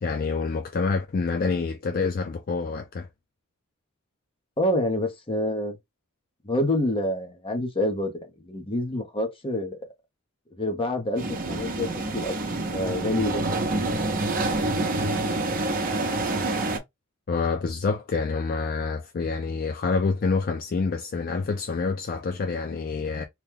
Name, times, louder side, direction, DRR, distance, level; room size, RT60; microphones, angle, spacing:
voice 1, 0.0-3.1 17.3-23.2, left 4 dB, 45° left, 0.4 m, -27 dB
voice 2, 4.6-5.8 6.4-9.8 10.6-13.4, left 1 dB, 25° left, 0.8 m, -27 dB
sound 1, 11.2-16.8, right 2 dB, 45° right, 0.8 m, -27 dB
3.0 x 2.3 x 3.5 m
head